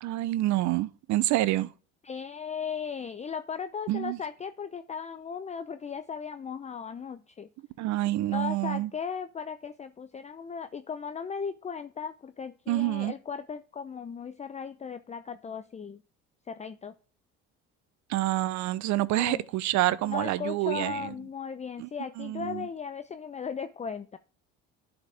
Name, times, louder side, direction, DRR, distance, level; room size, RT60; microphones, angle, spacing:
voice 1, 0.0-1.7 3.9-4.2 7.8-8.9 12.7-13.1 18.1-21.0 21.8-21.9 22.2-22.7, right 16 dB, 60° right, 0.7 m, -27 dB
voice 2, 2.0-7.5 8.3-16.0 16.5-16.9 19.1-19.5 20.0-24.2, left 6 dB, 20° left, 0.6 m, -37 dB
11.0 x 5.1 x 3.4 m
supercardioid pair, 75°, 32 cm